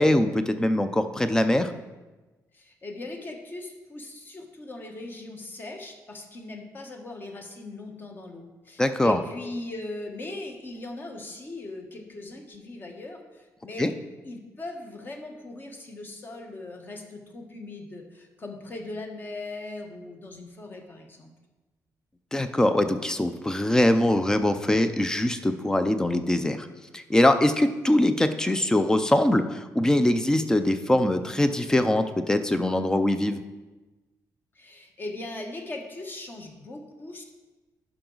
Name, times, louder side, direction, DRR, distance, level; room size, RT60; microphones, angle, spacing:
voice 1, 0.0-1.7 8.8-9.2 13.8-13.9 22.3-26.7 26.9-33.4, left 1 dB, 10° left, 10 dB, 0.4 m, -22 dB
voice 2, 2.5-13.9 14.2-21.3 34.5-37.2, left 2 dB, 30° left, 3 dB, 1.1 m, -39 dB
11.5 x 4.9 x 3.9 m, 1.2 s
cardioid pair, 150°, 7 cm